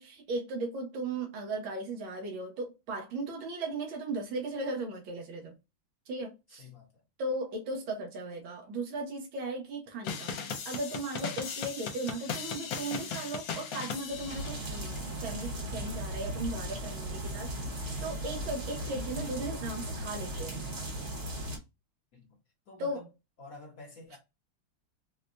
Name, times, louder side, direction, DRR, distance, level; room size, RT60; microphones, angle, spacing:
voice 1, 0.0-5.5 6.1-6.7 7.2-20.6 22.8-23.0, right 2 dB, 80° right, 1.7 m, -37 dB
voice 2, 6.6-7.0 22.1-22.4 22.7-23.1 23.4-24.2, left 2 dB, 55° left, 1.1 m, -49 dB
sound 1, 10.0-15.0, left 6 dB, 75° left, 1.4 m, -38 dB
sound 2, 14.1-21.6, right 1 dB, 45° right, 1.1 m, -37 dB
4.8 x 2.2 x 2.6 m
omnidirectional pair, 2.2 m